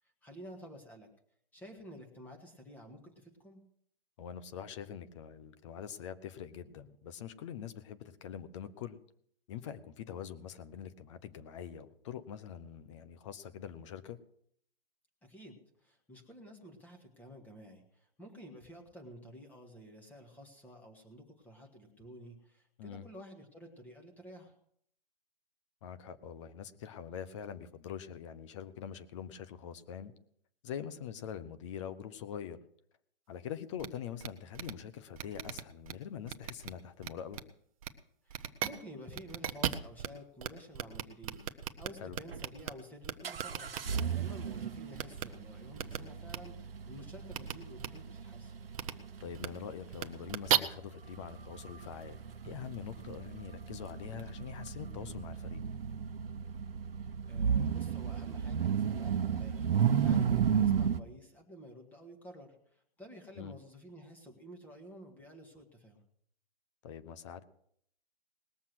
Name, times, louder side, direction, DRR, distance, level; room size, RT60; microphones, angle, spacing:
voice 1, 0.2-1.1 1.5-3.6 15.2-24.5 38.2-46.6 46.9-48.7 52.4-52.6 57.0-66.0, equal, 5° left, 2 dB, 1.9 m, -51 dB
voice 2, 4.2-9.0 9.5-14.2 22.8-23.1 25.8-30.1 30.6-32.6 33.3-37.4 42.0-42.2 49.2-55.6 63.4-63.5 66.8-67.4, left 8 dB, 30° left, 12 dB, 1.0 m, -44 dB
sound 1, 33.8-33.9 34.2-34.3 34.5-34.7 35.2-35.9 36.3-36.7 37.0-37.4 37.8-37.9 38.3-38.7 39.1-40.1 40.4-40.5 40.7-42.7 43.0-44.0 45.0-45.2 45.8-46.0 46.3-46.4 47.3-47.5 47.8-47.9 48.7-48.9 49.3-49.5 49.9-50.6, right 11 dB, 35° right, 0.9 m, -34 dB
sound 2, 42.3-42.4 43.2-61.0, right 7 dB, 75° right, 1.1 m, -34 dB
19.5 x 7.2 x 6.3 m, 0.67 s
hypercardioid pair, 150°, 29 cm